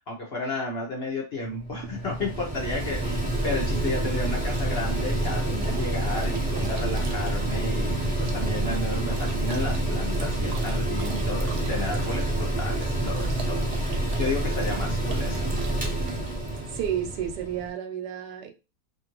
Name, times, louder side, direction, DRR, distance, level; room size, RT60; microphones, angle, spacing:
voice 1, 0.0-15.5, left 2 dB, 55° left, 0.7 m, -33 dB
Mechanical fan, 1.4-17.7, right 1 dB, 10° right, 0.4 m, -28 dB
sound 1, 4.4-16.9, right 6 dB, 65° right, 0.8 m, -45 dB
voice 2, 16.7-18.5, right 9 dB, 90° right, 1.3 m, -31 dB
2.9 x 2.6 x 2.9 m
omnidirectional pair, 1.7 m